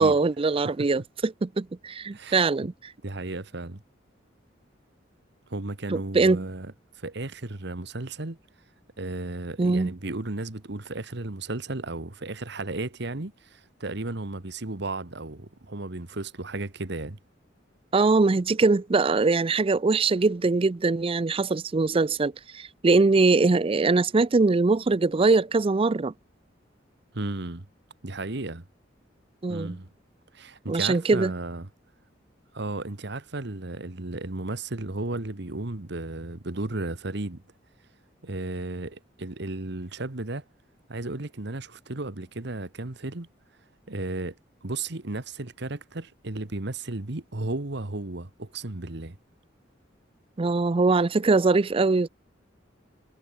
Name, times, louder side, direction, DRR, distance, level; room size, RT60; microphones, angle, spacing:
voice 1, 0.0-2.7 5.9-6.4 9.6-9.9 17.9-26.1 29.4-29.8 30.7-31.3 50.4-52.1, right 3 dB, 30° right, 0.5 m, -22 dB
voice 2, 2.1-2.5 3.0-3.8 5.5-8.4 9.0-17.2 27.1-27.7 28.0-28.6 29.5-29.9 30.3-31.7 32.5-37.4 38.2-40.4 40.9-43.3 43.9-49.2, right 2 dB, 65° right, 1.6 m, -34 dB
head